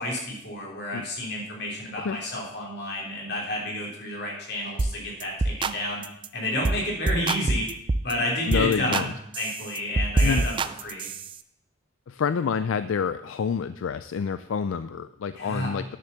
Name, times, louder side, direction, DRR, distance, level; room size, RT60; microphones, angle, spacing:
voice 1, 0.0-6.0 6.3-7.7 8.0-11.1 15.3-15.8, left 1 dB, 55° left, -2 dB, 3.4 m, -30 dB
sound 1, 4.8-4.9 5.2-5.8 6.0-6.3 6.6-6.8 7.1-8.1 8.5-9.1 9.3-11.4, right 2 dB, 25° right, 0.3 m, -26 dB
voice 2, 8.5-9.1 10.2-10.4 12.1-15.8, left 6 dB, 75° left, 13 dB, 0.4 m, -27 dB
9.9 x 6.8 x 6.9 m, 0.78 s
head